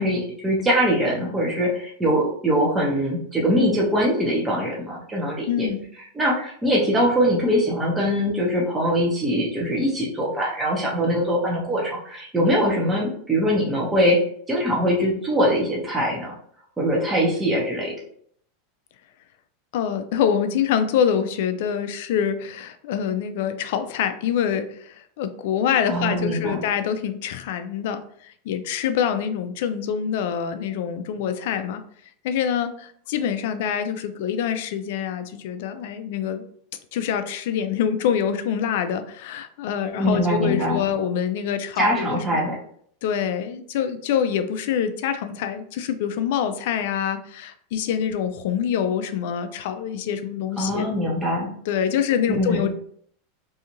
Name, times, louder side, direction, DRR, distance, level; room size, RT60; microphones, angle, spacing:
voice 1, 0.0-5.7 6.1-14.2 14.5-16.3 16.8-17.9 25.9-26.6 40.0-40.8 41.8-42.6 50.6-51.5 52.3-52.7, equal, 10° right, -4 dB, 0.7 m, -22 dB
voice 2, 5.5-5.8 19.7-31.8 32.2-36.4 36.9-42.2 43.0-50.9 51.7-52.7, left 8 dB, 70° left, 9 dB, 0.4 m, -25 dB
2.7 x 2.4 x 2.9 m, 0.62 s
supercardioid pair, 130°, 0 cm